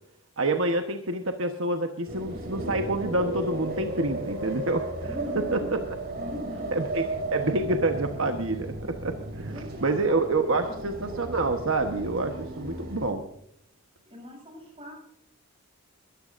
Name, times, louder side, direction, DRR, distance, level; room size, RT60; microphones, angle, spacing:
voice 1, 0.4-4.9 5.3-5.6 6.8-7.0 7.3-13.2, right 2 dB, 65° right, 5 dB, 1.2 m, -27 dB
sound 1, 2.1-13.1, right 2 dB, 45° right, 2.9 m, -35 dB
voice 2, 5.1-5.8 6.2-6.8 9.5-11.4 14.0-14.9, left 2 dB, 25° right, 0 dB, 7.4 m, -40 dB
22.0 x 14.0 x 2.6 m, 0.72 s
head